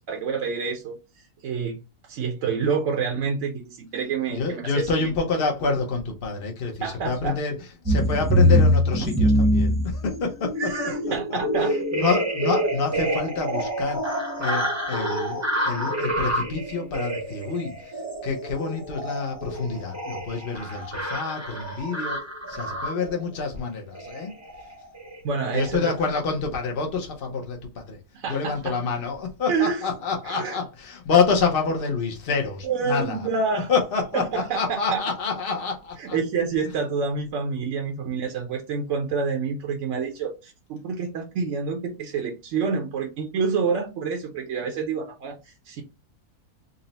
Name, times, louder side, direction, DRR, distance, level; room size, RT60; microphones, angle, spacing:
voice 1, 0.1-1.0 1.4-1.8 2.1-5.1 6.8-7.4 10.6-11.7 25.2-25.9 28.1-28.8 29.5-29.9 30.2-30.6 32.6-33.7 34.1-35.0 36.0-45.8, right 5 dB, 60° right, 0.9 m, -28 dB
voice 2, 4.3-7.6 7.8-10.7 11.3-22.2 22.5-24.3 25.5-28.0 28.3-33.3 33.7-36.2, left 5 dB, 55° left, 0.6 m, -27 dB
sound 1, 7.9-23.2 24.0-24.2 24.5-24.7 25.0-25.2 25.5-25.7, equal, 15° right, 0.6 m, -25 dB
3.9 x 2.0 x 3.9 m
omnidirectional pair, 1.6 m